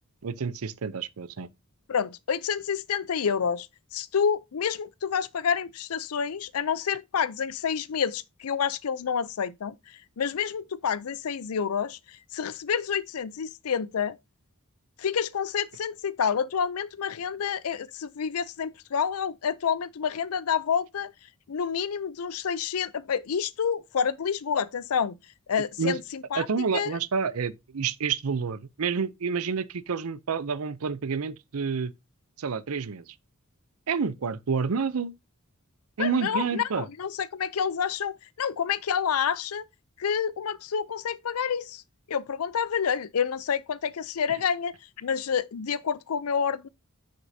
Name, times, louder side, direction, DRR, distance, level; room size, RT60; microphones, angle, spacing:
voice 1, 0.2-1.5 25.8-26.0 26.4-31.9 32.4-33.1 33.9-35.1 36.0-36.9, right 5 dB, 75° right, 0.6 m, -29 dB
voice 2, 1.9-3.7 3.9-14.2 15.0-21.1 21.5-25.2 25.5-26.5 26.7-27.0 36.0-39.7 40.0-41.8 42.1-46.7, left 7 dB, 80° left, 0.5 m, -28 dB
9.6 x 6.5 x 2.7 m
head